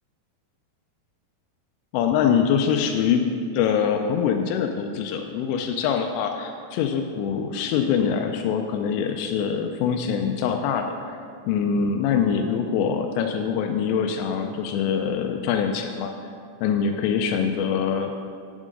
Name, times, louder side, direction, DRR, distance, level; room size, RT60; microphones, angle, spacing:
voice 1, 1.9-11.2 11.5-16.1 16.6-18.2, left 7 dB, 90° left, 4 dB, 2.8 m, -24 dB
9.3 x 7.4 x 5.1 m, 2.2 s
omnidirectional pair, 4.9 m